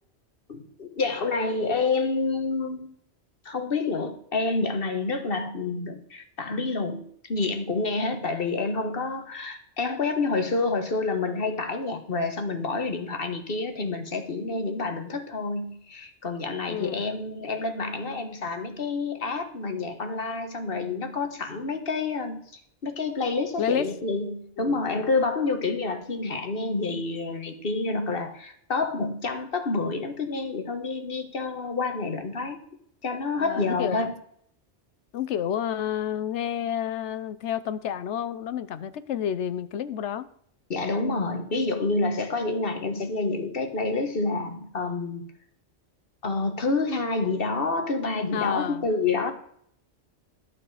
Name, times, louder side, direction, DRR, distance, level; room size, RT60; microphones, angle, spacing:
voice 1, 0.5-2.9 3.4-32.6 33.0-34.1 40.7-45.2 46.2-49.3, left 3 dB, 50° left, 7 dB, 1.5 m, -28 dB
voice 2, 16.7-17.0 23.6-23.9 24.6-24.8 33.4-34.1 35.1-40.3 48.3-48.9, left 9 dB, 75° left, 14 dB, 1.0 m, -30 dB
12.0 x 8.3 x 4.9 m, 0.65 s
omnidirectional pair, 1.2 m